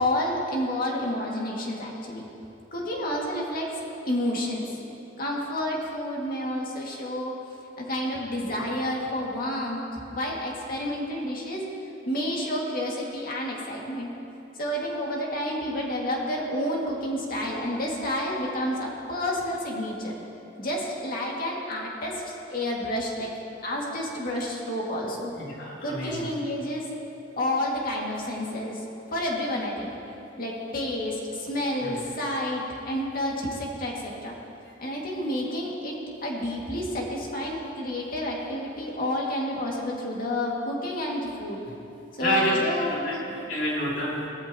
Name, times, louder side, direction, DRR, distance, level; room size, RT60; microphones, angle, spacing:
voice 1, 0.0-2.2 2.7-3.7 4.1-4.7 5.2-7.4 7.8-11.6 12.1-14.1 14.6-20.2 20.6-23.3 23.6-25.3 25.8-26.8 27.4-28.8 29.1-29.9 30.4-34.3 34.8-35.9 36.2-41.6 42.1-43.2, left 1 dB, 55° left, -2 dB, 2.2 m, -30 dB
voice 2, 25.4-26.3 31.8-32.0 42.2-42.6 42.9-44.3, left 1 dB, 85° left, -6 dB, 3.5 m, -28 dB
17.5 x 14.0 x 3.0 m, 2.8 s
head